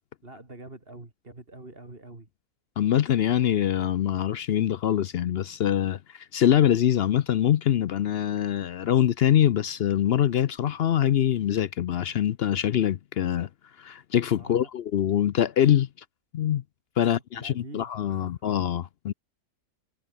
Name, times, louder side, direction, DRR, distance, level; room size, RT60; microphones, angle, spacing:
voice 1, 0.2-2.3 14.4-14.7 17.0-18.4, right 2 dB, 40° right, 3.5 m, -46 dB
voice 2, 2.8-13.5 13.8-15.9 16.3-16.6 17.0-19.1, left 10 dB, 65° left, 0.6 m, -24 dB
omnidirectional pair, 1.6 m